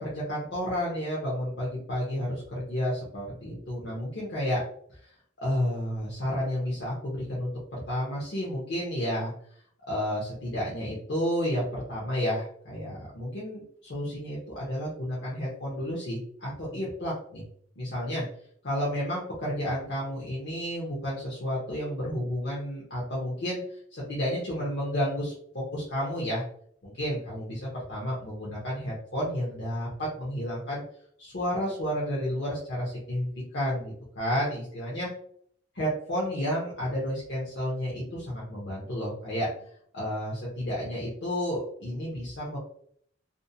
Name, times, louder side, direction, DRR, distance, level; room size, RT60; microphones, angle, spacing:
voice 1, 0.0-4.6 4.9-9.3 9.9-17.4 17.8-18.3 18.6-26.4 26.8-30.8 31.2-35.1 35.8-39.5 39.9-42.6, equal, 65° left, -6 dB, 0.7 m, -31 dB
2.6 x 2.1 x 2.6 m, 0.63 s
head